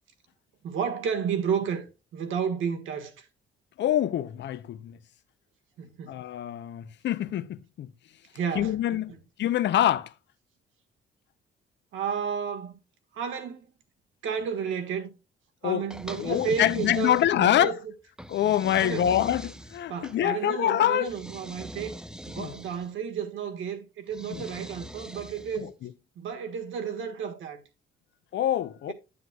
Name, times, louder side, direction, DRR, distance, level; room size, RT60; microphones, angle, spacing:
voice 1, 0.6-1.8 2.1-3.3 5.8-6.2 8.3-9.0 11.9-12.8 13.1-13.7 14.2-15.1 15.6-17.8 18.8-19.1 19.9-22.0 22.3-25.7 26.2-27.6, right 7 dB, 85° right, 1.4 m, -32 dB
voice 2, 3.8-5.0 6.1-7.9 8.6-9.1 9.4-10.1 15.6-15.9 16.2-17.7 18.3-21.1 22.4-22.5 24.3-24.4 25.6-25.9 28.3-28.9, left 11 dB, 65° left, 0.6 m, -25 dB
sound 1, 15.9-17.6 18.2-20.2 21.0-22.9 24.1-25.7, equal, 5° right, 0.5 m, -42 dB
9.4 x 7.9 x 2.3 m
cardioid pair, 90°, 20 cm